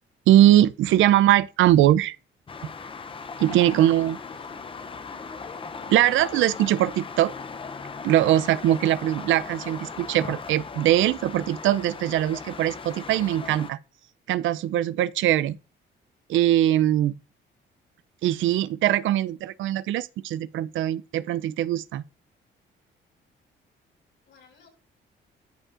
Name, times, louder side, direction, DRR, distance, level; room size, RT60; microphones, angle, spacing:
voice 1, 0.3-2.2 3.4-4.2 5.9-7.3 8.0-13.8 14.3-15.6 16.3-17.1 18.2-22.0, right 13 dB, 75° right, 0.4 m, -21 dB
sound 1, 2.5-13.7, left 5 dB, 25° left, 0.5 m, -38 dB
voice 2, 3.6-4.8 24.3-24.7, left 5 dB, 75° left, 5.0 m, -56 dB
13.5 x 4.8 x 2.5 m
cardioid pair, 90°, 20 cm